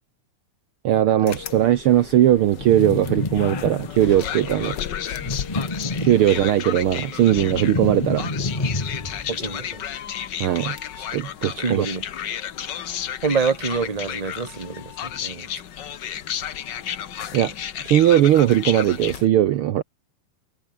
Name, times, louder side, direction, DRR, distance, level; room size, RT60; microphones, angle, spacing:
voice 1, 0.8-4.8 5.1-5.2 6.0-8.3 10.4-11.9 17.3-17.5 17.8-19.8, right 12 dB, 85° right, 1.2 m, -19 dB
sound 1, 1.3-19.3, left 9 dB, 65° left, 1.1 m, -32 dB
sound 2, 2.6-4.2 5.1-6.6 7.0-9.4, left 2 dB, 10° left, 2.0 m, -29 dB
voice 2, 9.3-9.8 11.6-12.0 13.2-15.5, right 5 dB, 20° right, 1.0 m, -26 dB
omnidirectional pair, 3.7 m